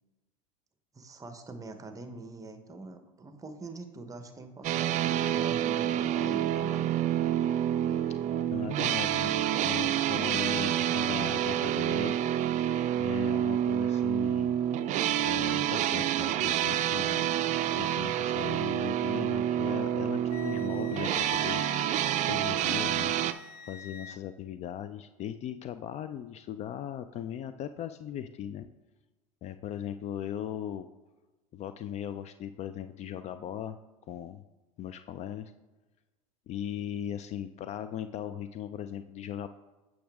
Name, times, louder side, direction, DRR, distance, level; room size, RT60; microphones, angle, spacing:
voice 1, 0.9-6.9, right 3 dB, 15° right, 8 dB, 1.0 m, -44 dB
sound 1, 4.6-23.3, right 11 dB, 40° right, 0.4 m, -28 dB
voice 2, 8.5-12.1 13.0-14.6 15.2-17.3 17.7-23.1 23.6-28.7 29.4-30.9 31.5-33.8 34.1-34.4 34.8-35.5 36.5-39.5, left 10 dB, 35° left, 11 dB, 0.4 m, -38 dB
Wind instrument woodwind instrument, 20.3-24.2, left 7 dB, 85° left, 0.7 m, -46 dB
8.6 x 6.0 x 3.5 m, 1.1 s
hypercardioid pair, 100°, 19 cm